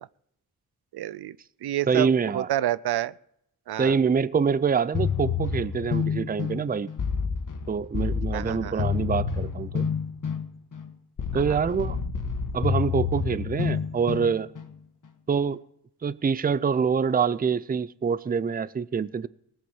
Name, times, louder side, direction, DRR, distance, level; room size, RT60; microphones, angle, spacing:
voice 1, 0.9-1.4 1.6-3.1 3.7-4.0 8.3-8.9 11.3-11.6, right 13 dB, 80° right, 0.5 m, -29 dB
voice 2, 1.9-2.5 3.8-6.9 7.7-9.9 11.3-12.0 12.5-14.5 15.3-15.6 16.0-19.3, right 6 dB, 25° right, 0.5 m, -25 dB
sound 1, 4.9-14.7, left 6 dB, 55° left, 1.5 m, -29 dB
18.0 x 8.1 x 7.1 m
wide cardioid pair, 90°, 38 cm